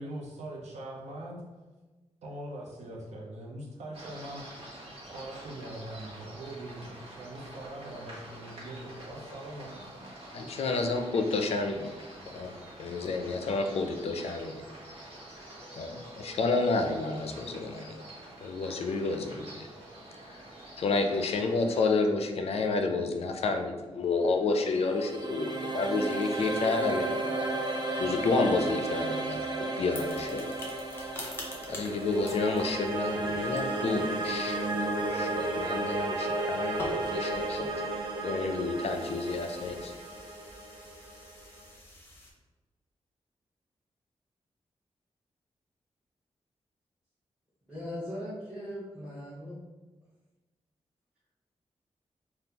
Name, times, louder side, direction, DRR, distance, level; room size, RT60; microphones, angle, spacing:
voice 1, 0.0-1.4 2.2-4.5 5.1-10.1, right 1 dB, 85° right, -1 dB, 0.6 m, -42 dB
sound 1, 3.9-21.9, right 1 dB, 60° right, 1.1 m, -47 dB
voice 2, 10.3-12.0 12.3-12.5 12.8-14.6 15.7-18.0 18.4-19.7 20.3-20.4 20.8-27.6 28.0-29.5 29.8-30.5 31.0-31.1 31.7-37.7 38.2-39.9, left 3 dB, 65° left, 4 dB, 0.4 m, -30 dB
sound 2, 24.5-41.6, right 2 dB, 40° right, 0.3 m, -33 dB
sound 3, 29.9-42.3, left 1 dB, 20° left, 0.6 m, -46 dB
voice 3, 47.7-49.6, equal, 10° right, -11 dB, 0.8 m, -39 dB
3.6 x 2.2 x 2.8 m, 1.2 s
wide cardioid pair, 170°, 11 cm